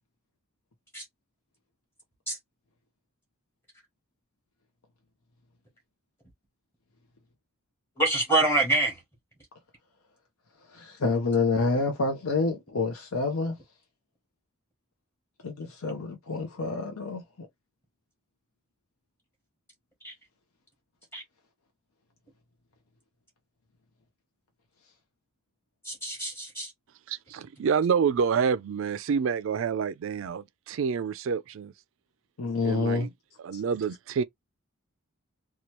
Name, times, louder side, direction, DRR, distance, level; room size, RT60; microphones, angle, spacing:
voice 1, 8.0-9.0 20.0-20.1 21.1-21.2 25.8-26.7, right 2 dB, 10° left, 1.0 m, -26 dB
voice 2, 10.7-13.6 15.4-17.5 32.4-33.1 33.5-33.6, left 3 dB, 90° left, 0.7 m, -28 dB
voice 3, 27.1-31.7 32.6-33.1 33.4-34.2, right 6 dB, 65° right, 0.3 m, -28 dB
2.9 x 2.3 x 3.0 m
head